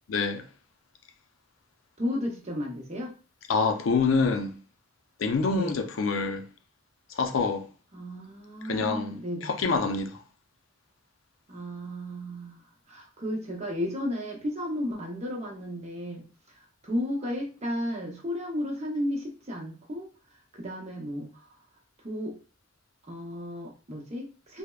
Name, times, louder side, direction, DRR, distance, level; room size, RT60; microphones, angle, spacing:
voice 1, 0.1-0.4 3.5-4.6 5.2-6.5 7.1-7.6 8.6-10.2, left 4 dB, 80° left, 0.5 m, -26 dB
voice 2, 2.0-3.1 5.5-5.8 7.9-9.6 11.5-20.1 20.5-21.5 22.0-22.4 23.0-24.6, left 1 dB, 35° right, 0.7 m, -34 dB
3.3 x 2.0 x 2.3 m
head